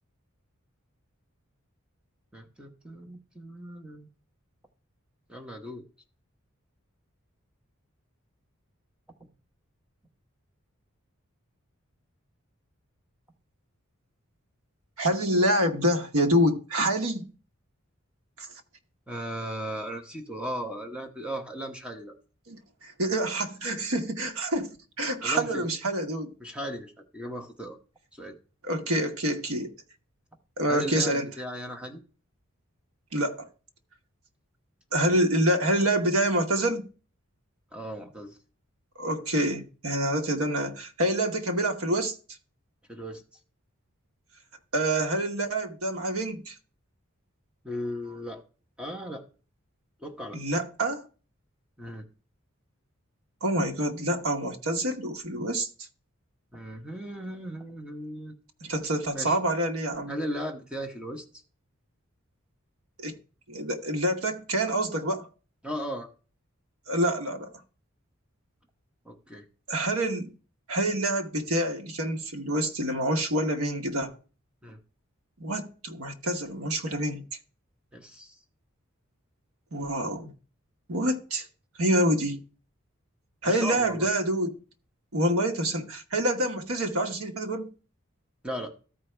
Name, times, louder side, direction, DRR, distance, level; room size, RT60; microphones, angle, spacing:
voice 1, 2.3-4.1 5.3-5.8 9.2-9.3 19.1-22.2 25.2-25.6 26.4-27.8 28.1-28.4 30.7-32.0 35.0-35.2 37.7-38.4 42.9-43.2 47.6-48.4 48.8-49.2 50.0-50.4 51.8-52.1 56.5-58.3 59.1-59.4 60.1-61.2 65.6-66.1 69.0-69.4 74.6-74.8 77.9-78.4 83.4-84.1 88.4-88.7, equal, 5° right, 1.0 m, -37 dB
voice 2, 15.0-17.3 18.4-18.5 22.5-26.3 28.6-29.7 30.6-31.3 33.1-33.5 34.9-36.9 39.0-42.2 44.7-46.5 50.3-51.1 53.4-55.7 58.6-60.1 63.0-63.2 63.5-65.3 66.9-67.5 69.7-70.3 70.7-74.1 75.4-77.2 79.7-80.3 80.9-81.5 81.8-82.4 83.4-84.5 85.1-87.7, right 1 dB, 85° right, 1.2 m, -27 dB
14.0 x 4.7 x 3.3 m
head